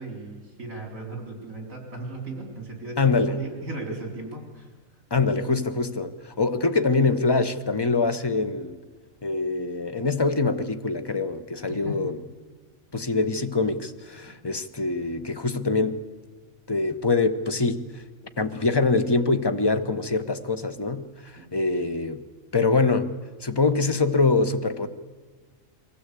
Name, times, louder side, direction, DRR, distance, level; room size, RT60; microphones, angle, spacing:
voice 1, 0.0-4.7 11.7-12.0 21.4-21.5, right 2 dB, 70° right, 4.3 m, -36 dB
voice 2, 3.0-3.4 5.1-8.8 9.2-12.2 12.9-16.0 16.7-18.0 18.4-22.2 22.5-23.1 23.4-24.9, left 3 dB, 20° left, 0.9 m, -24 dB
22.5 x 16.0 x 8.3 m
omnidirectional pair, 1.4 m